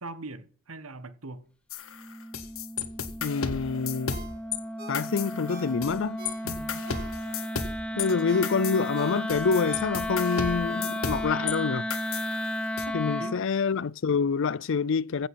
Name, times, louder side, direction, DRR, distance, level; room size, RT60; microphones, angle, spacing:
voice 1, 0.0-1.5 6.4-6.8 12.9-13.4, right 2 dB, 90° right, 1.5 m, -41 dB
sound 1, 1.7-4.6 4.9-6.0 6.3-11.6 11.9-12.9, left 6 dB, 80° left, 1.7 m, -34 dB
Wind instrument woodwind instrument, 1.9-13.4, left 1 dB, 5° left, 0.8 m, -34 dB
voice 2, 3.2-4.2 4.9-6.2 8.0-11.9 12.9-15.3, left 5 dB, 60° left, 0.5 m, -27 dB
Ringtone, 4.1-7.5 7.9-11.7 12.1-12.2, right 2 dB, 45° right, 3.4 m, -47 dB
16.0 x 6.7 x 5.8 m
head